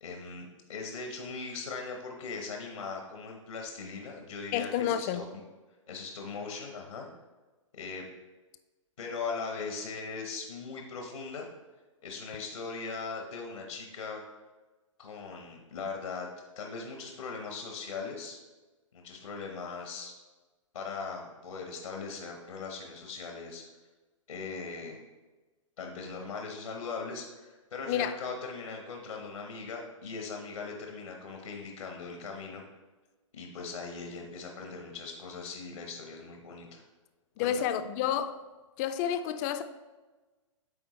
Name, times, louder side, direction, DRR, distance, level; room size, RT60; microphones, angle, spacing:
voice 1, 0.0-5.2 5.9-7.1 7.7-8.1 9.0-11.5 12.0-14.2 15.0-16.3 16.6-18.4 18.9-20.1 20.7-23.6 24.3-25.0 25.8-32.6 33.3-36.8 37.4-37.5, left 4 dB, 85° left, 1.0 m, -39 dB
voice 2, 4.5-5.2 27.9-28.2 37.4-38.4 38.8-39.6, left 9 dB, 30° left, 0.4 m, -30 dB
8.7 x 3.7 x 3.1 m
hypercardioid pair, 125°, 17 cm